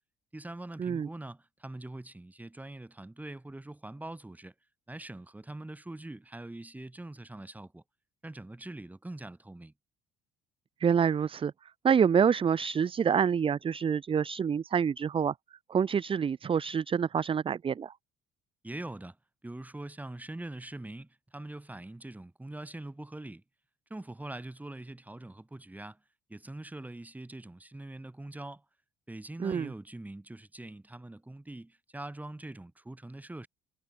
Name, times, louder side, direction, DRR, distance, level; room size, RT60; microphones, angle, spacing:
voice 1, 0.3-4.5 4.9-7.8 8.2-9.7 18.6-19.2 19.4-23.4 23.9-26.0 26.3-28.6 29.1-33.5, right 2 dB, 10° right, 4.2 m, -43 dB
voice 2, 10.8-11.5 11.8-15.3 15.7-17.9 29.4-29.7, right 7 dB, 30° right, 0.8 m, -27 dB
cardioid pair, 110°, 17 cm